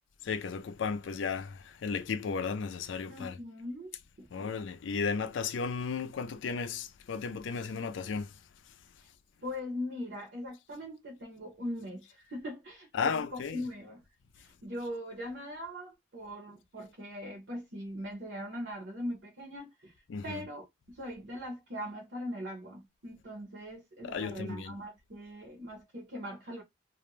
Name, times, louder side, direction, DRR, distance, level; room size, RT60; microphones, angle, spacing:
voice 1, 0.2-3.4 4.3-8.3 12.9-13.6 20.1-20.4 24.0-24.7, left 5 dB, 80° left, 0.4 m, -34 dB
voice 2, 3.1-4.5 9.4-14.0 14.4-19.9 20.2-26.6, equal, 65° right, 0.8 m, -41 dB
2.4 x 2.1 x 3.0 m
head